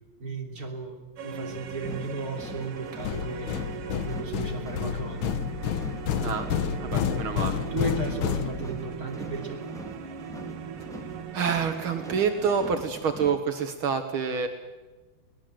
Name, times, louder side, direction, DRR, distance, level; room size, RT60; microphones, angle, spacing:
voice 1, 0.2-3.6 4.0-5.3 7.7-9.7, right 2 dB, 40° right, 1 dB, 3.8 m, -35 dB
sound 1, 1.2-12.7, right 8 dB, 90° right, 2.2 m, -40 dB
sound 2, 1.5-13.4, equal, ahead, 1.6 m, -43 dB
sound 3, 3.0-9.1, left 8 dB, 70° left, 1.7 m, -30 dB
voice 2, 6.8-7.6 11.3-14.5, right 6 dB, 70° right, 6 dB, 2.2 m, -27 dB
23.5 x 18.5 x 7.8 m, 1.2 s
omnidirectional pair, 2.4 m